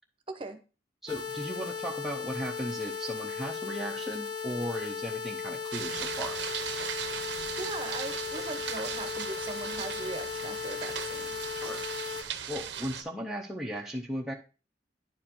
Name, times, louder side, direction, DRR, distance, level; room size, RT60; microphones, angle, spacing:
voice 1, 0.3-0.6 7.6-11.4, right 3 dB, 30° right, 7 dB, 0.8 m, -39 dB
voice 2, 1.0-6.4 11.5-14.3, equal, ahead, -1 dB, 0.6 m, -37 dB
sound 1, 1.1-12.2, left 5 dB, 25° left, 0.9 m, -37 dB
sound 2, 5.7-13.0, right 8 dB, 65° right, 0.6 m, -38 dB
10.0 x 4.8 x 2.8 m, 0.34 s
head